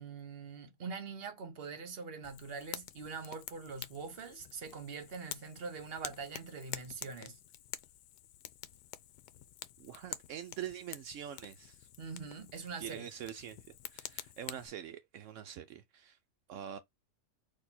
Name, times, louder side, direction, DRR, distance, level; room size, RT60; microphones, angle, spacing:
voice 1, 0.0-7.4 12.0-13.0, right 5 dB, 40° right, 1.0 m, -43 dB
Fire, 2.2-14.7, left 12 dB, 85° left, 1.2 m, -48 dB
voice 2, 9.8-11.9 12.8-16.2 16.5-16.8, right 10 dB, 75° right, 0.7 m, -45 dB
4.4 x 2.8 x 4.1 m
omnidirectional pair, 1.8 m